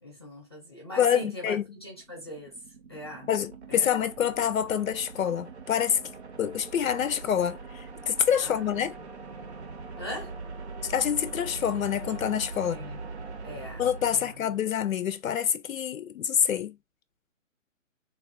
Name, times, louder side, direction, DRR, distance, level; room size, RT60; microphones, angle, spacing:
voice 1, 0.0-2.5 2.9-3.3 3.7-3.9 8.4-8.9 10.0-10.3 12.7-13.1 13.4-14.3, equal, 20° left, 0.7 m, -40 dB
voice 2, 1.0-1.6 3.3-6.0 6.4-8.9 10.8-12.8 13.8-16.7, left 9 dB, 85° left, 0.6 m, -27 dB
sound 1, 1.8-15.0, right 4 dB, 55° right, 0.6 m, -42 dB
3.4 x 2.4 x 2.4 m
hypercardioid pair, 170°, 40 cm